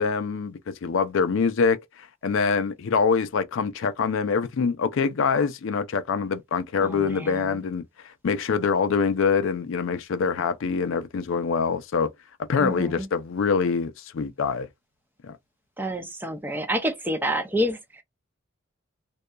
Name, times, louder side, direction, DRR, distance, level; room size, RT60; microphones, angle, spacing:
voice 1, 0.0-1.8 2.2-7.8 8.2-12.1 12.5-14.7 15.3-15.4, left 5 dB, 70° left, 0.4 m, -24 dB
voice 2, 6.8-7.6 12.6-13.1 15.8-18.0, equal, 10° right, 0.5 m, -28 dB
2.7 x 2.2 x 2.3 m
head